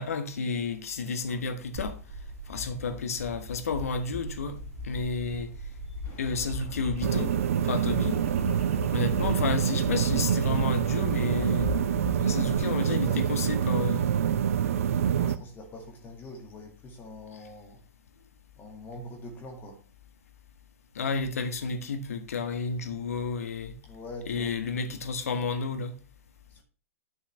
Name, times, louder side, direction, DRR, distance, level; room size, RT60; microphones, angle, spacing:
voice 1, 0.0-2.0 2.5-4.6 4.8-5.5 6.2-7.4 7.6-8.2 8.9-11.7 12.2-14.1 21.0-23.8 24.3-25.9, left 4 dB, 70° left, 1.6 m, -31 dB
sound 1, 1.8-12.6, left 1 dB, 45° right, 3.0 m, -38 dB
sound 2, 6.0-12.1, left 3 dB, 40° left, 3.8 m, -50 dB
sound 3, 7.0-15.4, right 9 dB, 65° right, 0.6 m, -26 dB
voice 2, 12.1-13.9 14.4-14.6 15.1-17.8 18.6-19.8 23.8-24.5 26.5-26.6, left 1 dB, 25° left, 2.1 m, -45 dB
11.0 x 6.3 x 3.3 m
hypercardioid pair, 110°, 8 cm